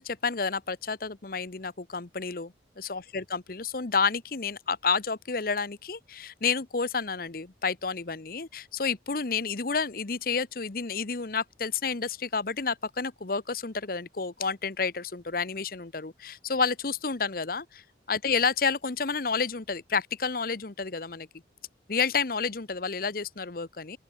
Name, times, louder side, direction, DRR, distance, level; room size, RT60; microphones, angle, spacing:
voice 1, 0.0-21.3 21.9-24.0, left 5 dB, 50° left, 0.9 m, -30 dB
open air
head